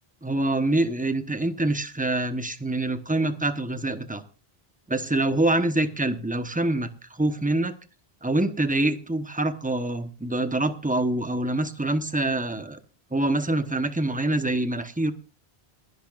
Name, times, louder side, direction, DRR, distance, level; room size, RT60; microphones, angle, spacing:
voice 1, 0.2-4.2 4.9-7.7 8.2-12.8 13.1-15.1, right 2 dB, 10° right, 9 dB, 1.0 m, -25 dB
28.0 x 11.0 x 2.5 m, 0.34 s
omnidirectional pair, 1.0 m